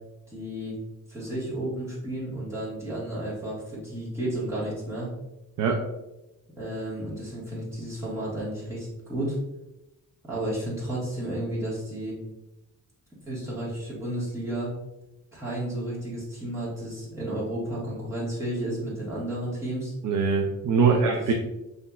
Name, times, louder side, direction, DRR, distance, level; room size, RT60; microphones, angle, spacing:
voice 1, 0.3-0.8 1.1-5.1 6.6-9.4 10.2-12.2 13.3-14.7 15.3-19.9 20.8-21.3, right 1 dB, 10° right, -8 dB, 1.4 m, -32 dB
voice 2, 20.0-21.3, right 5 dB, 65° right, 3 dB, 0.5 m, -22 dB
5.7 x 2.7 x 2.3 m, 0.95 s
wide cardioid pair, 175°, 33 cm